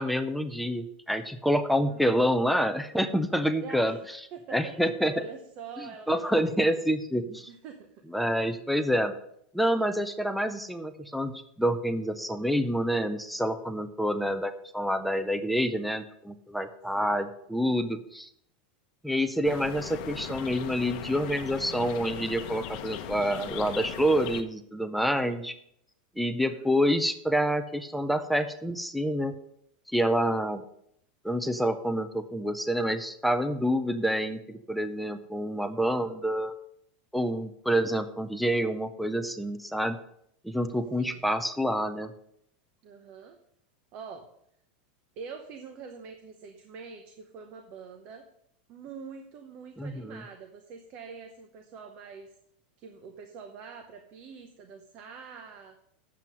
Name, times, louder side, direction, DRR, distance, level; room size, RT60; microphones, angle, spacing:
voice 1, 0.0-4.0 4.5-5.1 6.1-7.5 8.1-9.1 9.5-18.3 19.0-25.5 26.2-29.3 29.9-30.6 31.2-36.5 37.1-40.0 40.4-42.1 49.8-50.2, equal, ahead, 9 dB, 0.4 m, -27 dB
voice 2, 1.7-2.1 3.6-4.0 4.3-4.8 5.1-6.7 7.5-8.0 17.0-17.2 26.1-26.7 41.0-41.2 42.8-43.4 43.9-44.3 45.2-48.3 48.7-52.4 52.8-55.8, right 5 dB, 30° right, 6 dB, 0.8 m, -45 dB
sound 1, 19.4-24.4, left 10 dB, 45° left, 0.9 m, -38 dB
9.3 x 7.5 x 5.3 m, 0.71 s
supercardioid pair, 175°, 5 cm